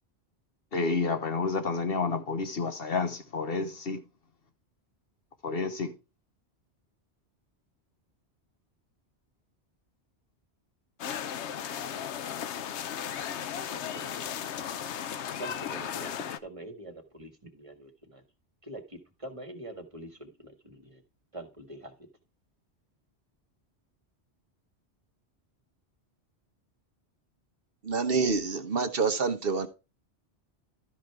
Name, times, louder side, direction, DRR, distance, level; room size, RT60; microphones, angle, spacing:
voice 1, 0.7-4.0 5.4-5.9, left 4 dB, 60° left, 1.3 m, -30 dB
sound 1, 11.0-16.4, left 9 dB, 85° left, 1.0 m, -35 dB
voice 2, 11.8-12.2 13.7-14.0 14.6-14.7 15.4-16.1 16.4-18.2 18.6-21.0 21.3-21.9, right 1 dB, 30° right, 1.8 m, -44 dB
voice 3, 27.8-29.7, right 4 dB, 60° right, 1.2 m, -27 dB
12.5 x 5.1 x 4.7 m
omnidirectional pair, 1.1 m